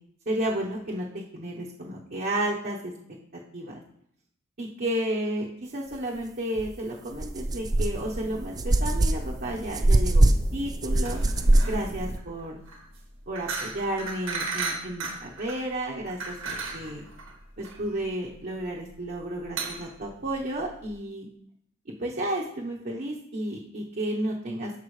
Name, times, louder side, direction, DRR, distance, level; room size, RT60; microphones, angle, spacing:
voice 1, 0.3-2.9 3.5-3.7 4.6-11.2 11.7-12.6 13.3-16.4 16.7-17.1 17.6-21.3 21.9-24.7, right 1 dB, 50° right, -4 dB, 1.0 m, -32 dB
sound 1, 6.6-6.7 7.1-12.2, right 1 dB, 20° right, 0.4 m, -23 dB
sound 2, 11.0-20.9, right 4 dB, 80° right, 1.8 m, -36 dB
13.0 x 4.9 x 3.2 m, 0.69 s
head